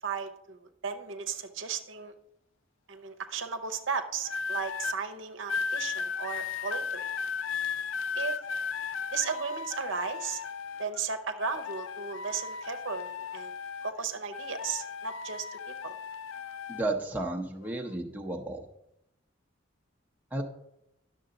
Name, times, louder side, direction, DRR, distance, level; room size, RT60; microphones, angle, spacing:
voice 1, 0.0-2.1 2.9-7.1 8.1-8.4 9.1-10.4 10.8-13.5 13.8-16.0, right 5 dB, 75° right, 7 dB, 0.7 m, -35 dB
sound 1, 4.2-5.0 5.5-11.0 11.4-14.0 14.3-16.8 17.6-17.9, left 6 dB, 75° left, 0.4 m, -35 dB
voice 2, 16.7-18.7 20.3-20.4, right 2 dB, 10° right, 0 dB, 0.7 m, -33 dB
10.5 x 6.6 x 3.9 m, 0.84 s
head